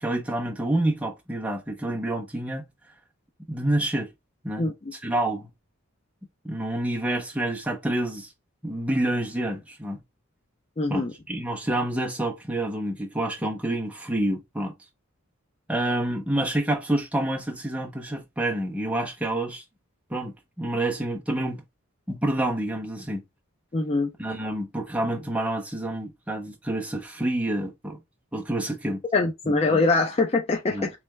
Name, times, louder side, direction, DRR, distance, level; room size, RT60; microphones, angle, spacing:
voice 1, 0.0-2.7 3.5-4.1 4.4-5.5 6.4-8.3 8.6-10.0 10.9-14.7 15.7-19.6 20.1-21.6 22.1-23.2 24.2-28.0 28.3-29.0 29.4-29.8 30.7-30.9, right 1 dB, 5° right, 0.8 m, -28 dB
voice 2, 10.8-11.1 23.7-24.1 29.1-30.9, left 3 dB, 30° left, 0.4 m, -23 dB
3.3 x 3.2 x 3.3 m
head